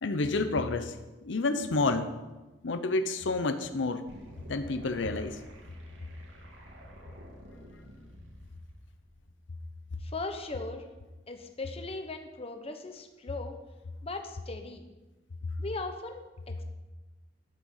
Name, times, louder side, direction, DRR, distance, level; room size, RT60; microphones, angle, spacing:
voice 1, 0.0-1.0 1.2-2.1 2.6-4.0 4.5-5.4, left 3 dB, 85° left, 9 dB, 0.7 m, -29 dB
sound 1, 4.1-9.1, equal, 90° right, 2.2 m, -50 dB
voice 2, 10.0-10.9 11.3-13.6 14.0-14.8 15.6-16.6, left 3 dB, 35° left, 5 dB, 1.1 m, -38 dB
12.0 x 6.3 x 7.2 m, 1.1 s
head